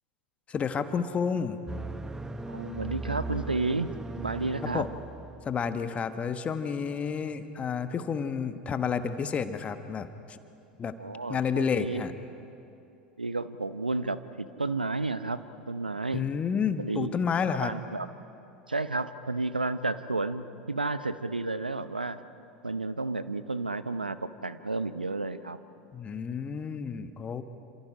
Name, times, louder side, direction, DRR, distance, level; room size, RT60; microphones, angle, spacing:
voice 1, 0.5-1.6 4.7-4.9 5.4-10.4 10.8-10.9 11.3-12.1 16.1-17.7 25.9-27.4, left 6 dB, 25° left, 10 dB, 1.2 m, -30 dB
sound 1, 1.7-5.7, right 2 dB, 10° right, 0.9 m, -38 dB
voice 2, 2.5-3.9 4.2-4.8 11.0-12.0 13.2-16.3 16.8-17.2 17.6-18.1 18.7-22.2 22.6-25.6, right 3 dB, 85° right, 13 dB, 0.7 m, -32 dB
28.0 x 27.0 x 5.0 m, 2.7 s
figure-of-eight pair, 80°, 5 cm